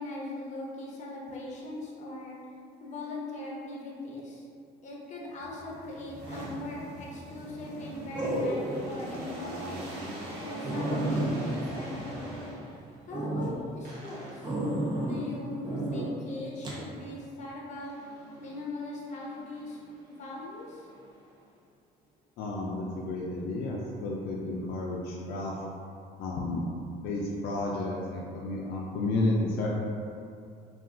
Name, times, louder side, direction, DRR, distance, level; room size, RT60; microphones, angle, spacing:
voice 1, 0.0-2.4 2.8-4.5 4.8-9.9 10.4-12.3 13.1-14.6 15.0-18.0 18.4-19.8 20.1-20.9, left 2 dB, 45° left, -3 dB, 0.7 m, -40 dB
sound 1, 5.3-13.0 13.8-14.7 17.8-18.6 19.1-21.5, equal, 80° right, 0.7 m, -42 dB
sound 2, 6.7-7.0 8.2-8.9 9.4-9.5 10.0-10.1 10.3-10.4 10.6-12.7 13.1-13.5 14.4-15.2 15.6-16.1 16.6-16.8, right 1 dB, 25° right, 0.6 m, -31 dB
voice 2, 22.4-25.5 26.2-26.7 27.0-29.7, left 2 dB, 80° left, -3 dB, 0.4 m, -31 dB
2.4 x 2.3 x 3.6 m, 2.4 s
cardioid pair, 110°, 17 cm